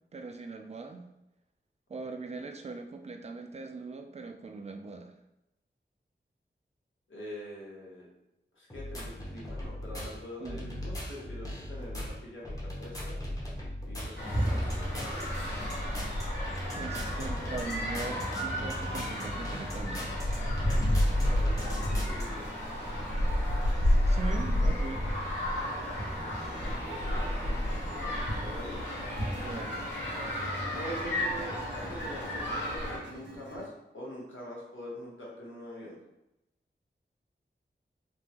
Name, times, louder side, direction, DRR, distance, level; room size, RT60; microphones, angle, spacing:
voice 1, 0.1-1.1 1.9-5.1 10.4-10.7 16.7-20.2 24.0-25.1 29.4-29.9, right 3 dB, 35° right, 6 dB, 0.3 m, -40 dB
voice 2, 7.1-8.1 8.5-13.2 13.8-15.3 21.2-22.6 26.9-27.3 27.8-28.8 30.7-36.0, equal, 90° left, -4 dB, 1.0 m, -44 dB
sound 1, 8.7-22.2, equal, 20° left, 0.7 m, -38 dB
sound 2, 14.2-33.0, equal, 70° left, 1.1 m, -31 dB
sound 3, 21.0-33.7, right 2 dB, 65° right, 0.7 m, -49 dB
3.4 x 2.1 x 2.8 m, 0.89 s
wide cardioid pair, 70°, 19 cm